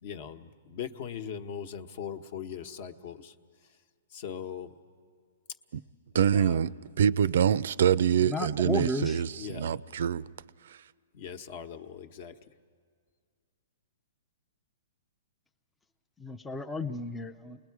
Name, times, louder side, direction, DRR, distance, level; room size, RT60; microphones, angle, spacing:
voice 1, 0.0-3.3 4.1-4.7 6.1-6.6 9.3-9.7 11.1-12.3, left 8 dB, 45° left, 1.0 m, -40 dB
voice 2, 6.1-10.2, right 8 dB, 65° right, 0.5 m, -25 dB
voice 3, 8.2-9.2 16.2-17.6, left 1 dB, 5° left, 0.5 m, -33 dB
29.0 x 20.5 x 4.7 m
hypercardioid pair, 160°, 0 cm